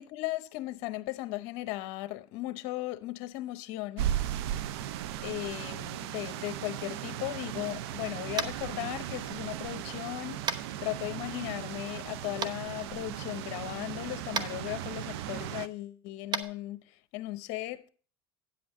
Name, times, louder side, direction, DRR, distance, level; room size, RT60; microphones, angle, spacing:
voice 1, 0.0-4.1 5.2-17.8, left 17 dB, 65° left, 0.8 m, -37 dB
sound 1, 4.0-15.7, right 11 dB, 80° right, 0.6 m, -37 dB
Tap, 8.3-8.6 10.5-10.6 12.4-12.5 14.3-14.5 16.3-16.4, right 5 dB, 35° right, 1.0 m, -31 dB
9.6 x 7.8 x 4.3 m
supercardioid pair, 105°, 13 cm